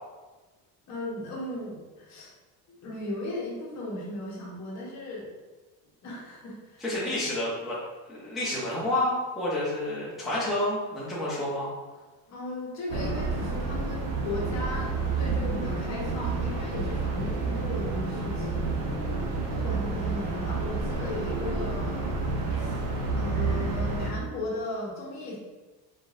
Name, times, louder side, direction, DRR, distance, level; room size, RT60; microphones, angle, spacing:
voice 1, 0.9-2.3 2.8-5.3 6.0-7.1 8.8-9.0 12.3-18.7 19.4-22.1 22.5-22.8 23.1-25.4, left 1 dB, 45° left, -4 dB, 1.1 m, -36 dB
voice 2, 6.8-7.8 8.1-11.7, left 1 dB, ahead, -9 dB, 0.6 m, -29 dB
sound 1, 12.9-24.1, right 3 dB, 50° right, 0.7 m, -29 dB
3.7 x 3.7 x 2.5 m, 1.2 s
cardioid pair, 165°, 39 cm